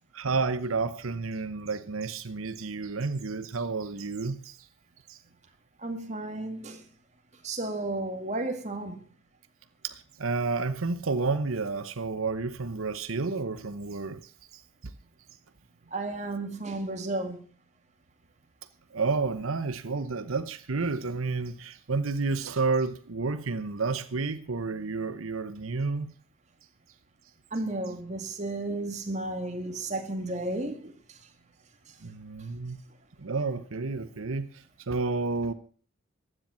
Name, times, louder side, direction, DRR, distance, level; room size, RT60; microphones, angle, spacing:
voice 1, 0.1-4.6 5.1-5.2 9.9-14.2 18.9-26.1 32.0-32.8 33.2-34.5 34.9-35.5, right 4 dB, 85° right, 0.9 m, -30 dB
voice 2, 5.8-6.8 7.4-9.0 15.9-17.4 27.5-30.9, right 2 dB, 35° right, 2.1 m, -33 dB
15.0 x 10.0 x 5.6 m
head